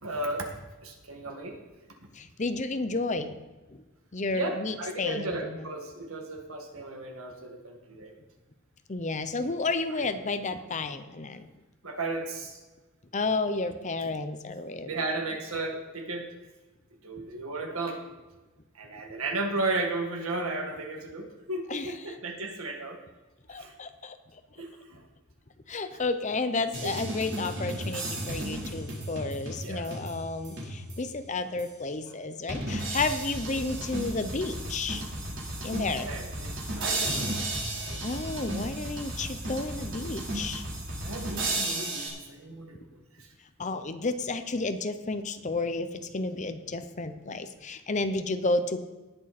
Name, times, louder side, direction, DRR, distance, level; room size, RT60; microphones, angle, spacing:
voice 1, 0.0-0.5 0.8-1.6 4.3-8.1 9.9-10.1 11.8-12.6 14.9-16.3 17.0-18.0 18.7-23.0 23.6-23.7 24.6-25.0 26.8-26.9 29.6-29.9 36.0-37.3 37.8-38.1 41.0-42.8 43.1-43.3, right 2 dB, 75° right, 2 dB, 2.0 m, -34 dB
voice 2, 2.1-3.4 3.7-3.8 4.1-5.7 8.9-11.5 13.1-14.9 21.7-22.1 23.5-24.6 25.7-35.0 35.6-36.1 38.0-40.6 43.6-48.8, left 3 dB, 35° left, 9 dB, 0.7 m, -32 dB
sound 1, 26.7-31.1 31.6-31.7 32.5-42.1, right 1 dB, 60° right, 3.8 m, -34 dB
18.5 x 7.5 x 4.3 m, 1.2 s
head